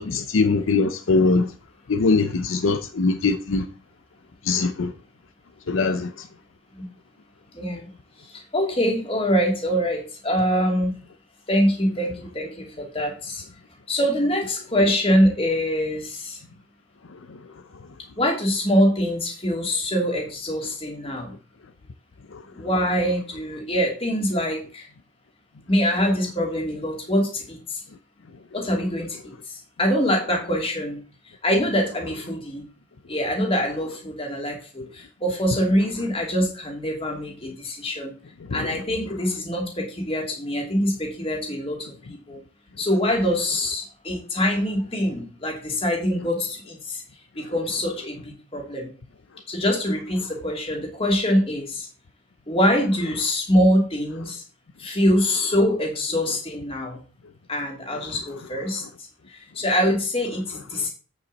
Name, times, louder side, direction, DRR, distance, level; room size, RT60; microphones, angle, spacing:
voice 1, 0.0-1.5 1.9-3.7 4.5-4.9 5.7-6.1 22.3-22.4 38.5-38.7, left 3 dB, 70° left, 0.6 m, -22 dB
voice 2, 7.5-7.9 8.2-10.9 11.5-13.4 13.9-16.4 18.2-21.3 22.5-24.9 25.7-27.8 28.5-31.0 31.4-32.6 33.1-38.1 38.5-42.4 42.8-47.0 47.4-48.9 49.5-51.9 52.5-54.4 54.8-57.0 57.5-58.8 59.3-60.9, equal, 25° left, 2.8 m, -24 dB
8.4 x 7.3 x 4.1 m
head